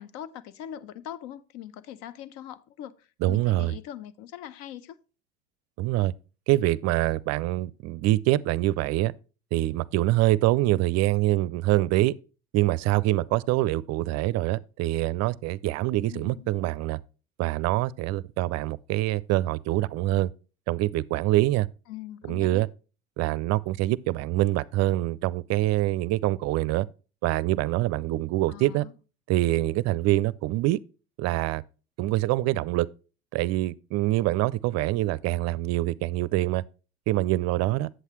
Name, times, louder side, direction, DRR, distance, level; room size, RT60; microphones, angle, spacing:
voice 1, 0.0-5.0 16.1-16.5 21.9-22.6 28.5-28.9, left 11 dB, 70° left, 0.7 m, -41 dB
voice 2, 3.2-3.7 5.8-6.1 6.5-9.1 9.5-12.1 12.5-17.0 17.4-20.3 20.7-21.7 22.3-22.7 23.2-26.9 27.2-28.9 29.3-30.8 31.2-31.6 32.0-32.9 33.3-36.6 37.1-37.9, right 17 dB, 55° right, 0.5 m, -25 dB
8.1 x 7.8 x 3.0 m
hypercardioid pair, 75°, 32 cm